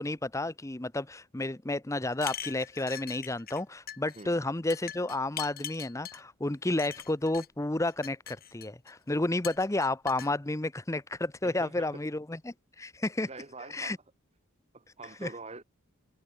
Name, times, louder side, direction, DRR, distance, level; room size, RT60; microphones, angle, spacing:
voice 1, 0.0-13.3 13.7-14.0 15.2-15.3, left 2 dB, 15° left, 0.7 m, -31 dB
sound 1, 2.1-3.6 3.9-4.2 4.7-6.2 6.8-7.5 7.9-8.9 9.4-10.3, left 10 dB, 45° left, 2.8 m, -41 dB
voice 2, 11.4-12.0 13.2-14.0 14.7-15.6, right 3 dB, 30° right, 1.7 m, -45 dB
head